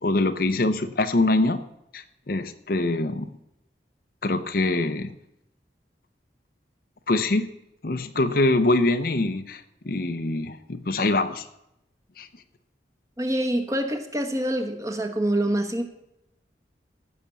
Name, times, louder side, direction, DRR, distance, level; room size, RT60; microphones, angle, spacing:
voice 1, 0.0-1.6 1.9-3.3 4.2-5.1 7.1-7.5 7.8-11.5 12.2-12.3, left 2 dB, 55° left, 9 dB, 0.7 m, -24 dB
voice 2, 13.2-15.8, right 1 dB, 15° right, 4 dB, 1.2 m, -26 dB
15.0 x 6.0 x 6.8 m, 0.82 s
head